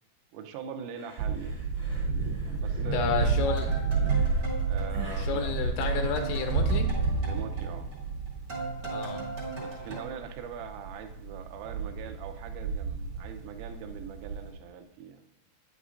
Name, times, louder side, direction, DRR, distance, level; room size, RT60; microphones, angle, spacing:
voice 1, 0.3-1.6 2.5-3.4 4.7-5.6 5.9-6.2 7.3-7.9 9.6-15.2, right 7 dB, 85° right, 6 dB, 3.2 m, -42 dB
sound 1, 0.9-6.5, equal, 60° left, 1.3 m, -50 dB
sound 2, 1.2-14.5, right 4 dB, 70° right, 2.7 m, -30 dB
voice 2, 2.9-3.7 5.2-6.9 8.9-9.2, left 6 dB, 85° left, 3 dB, 3.2 m, -31 dB
sound 3, 3.4-5.5 5.8-10.0, right 3 dB, 50° right, 1.0 m, -39 dB
9.3 x 8.8 x 2.5 m, 0.85 s
omnidirectional pair, 5.6 m